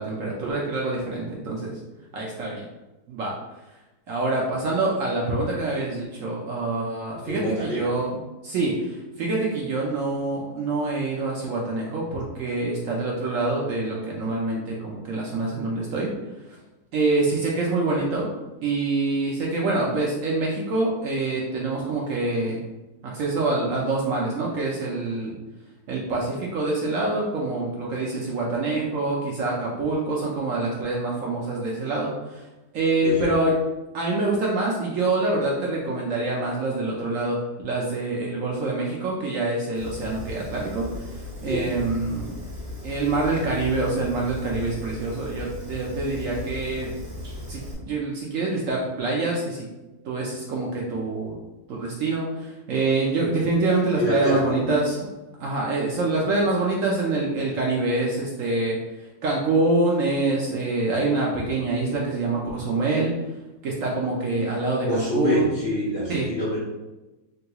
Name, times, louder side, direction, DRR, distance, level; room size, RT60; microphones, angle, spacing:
voice 1, 0.0-1.8 2.1-2.7 3.1-3.3 4.1-16.1 16.9-18.3 18.6-22.6 23.0-25.3 25.9-32.5 32.7-33.6 33.9-37.4 37.6-42.3 42.8-46.9 47.5-49.7 50.0-51.4 51.7-55.0 55.4-58.8 59.2-63.1 63.6-65.6 66.1-66.3, right 2 dB, 65° right, -3 dB, 0.8 m, -25 dB
voice 2, 7.3-8.0 33.0-33.3 41.4-41.7 53.9-54.7 64.9-66.6, left 1 dB, 60° left, -6 dB, 0.7 m, -26 dB
Fire, 39.7-47.7, left 2 dB, 50° right, 1.1 m, -37 dB
3.6 x 2.8 x 2.3 m, 1.1 s
omnidirectional pair, 1.8 m